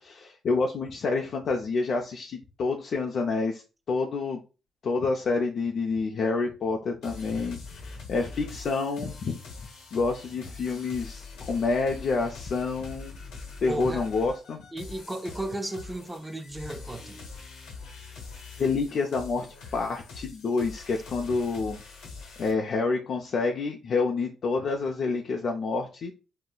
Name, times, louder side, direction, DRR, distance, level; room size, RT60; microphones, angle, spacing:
voice 1, 0.0-3.6 3.9-4.4 4.8-9.4 9.9-13.2 13.6-14.6 18.6-19.5 19.7-21.8 22.4-26.1, left 4 dB, 55° left, 0.4 m, -28 dB
sound 1, 7.0-22.5, left 4 dB, 90° left, 1.1 m, -43 dB
voice 2, 13.7-14.1 14.7-17.2, right 2 dB, 15° right, 0.3 m, -35 dB
3.8 x 2.0 x 2.3 m
cardioid pair, 90°, 0 cm